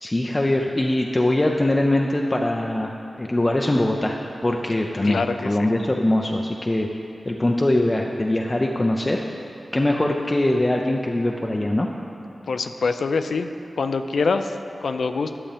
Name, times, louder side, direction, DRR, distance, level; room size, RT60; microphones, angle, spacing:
voice 1, 0.0-4.2 4.4-6.9 7.3-9.2 9.7-11.9, left 1 dB, 25° left, 1 dB, 0.4 m, -22 dB
voice 2, 5.0-5.7 12.5-15.4, left 4 dB, 90° left, 8 dB, 0.4 m, -25 dB
11.5 x 7.2 x 3.4 m, 2.9 s
wide cardioid pair, 95°, 0 cm